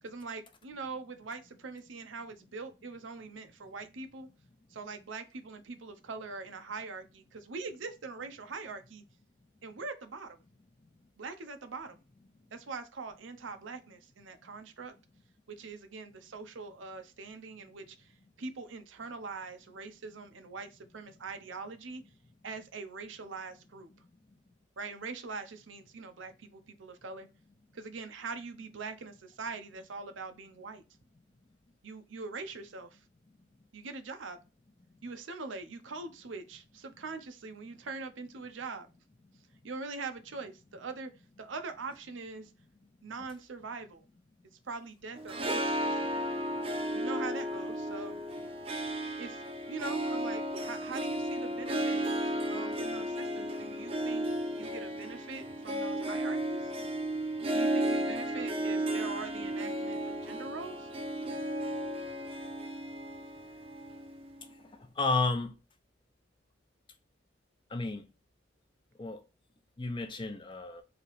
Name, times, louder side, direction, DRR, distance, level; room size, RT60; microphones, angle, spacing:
voice 1, 0.0-4.3 4.7-9.0 9.6-10.4 11.2-12.0 12.5-14.9 15.5-18.1 18.4-22.0 22.4-23.9 24.8-27.3 27.7-30.8 31.8-33.0 33.7-34.4 35.0-38.9 39.6-41.1 41.4-42.5 43.0-44.0 44.6-46.2 46.9-48.2 49.2-49.4 49.7-56.7 57.5-60.9, right 4 dB, 75° right, 0.6 m, -43 dB
Harp, 45.2-64.5, right 1 dB, 30° right, 0.6 m, -34 dB
voice 2, 65.0-65.5 67.7-68.0 69.0-69.2 69.8-70.8, left 3 dB, 25° left, 0.5 m, -31 dB
3.3 x 2.8 x 4.0 m
head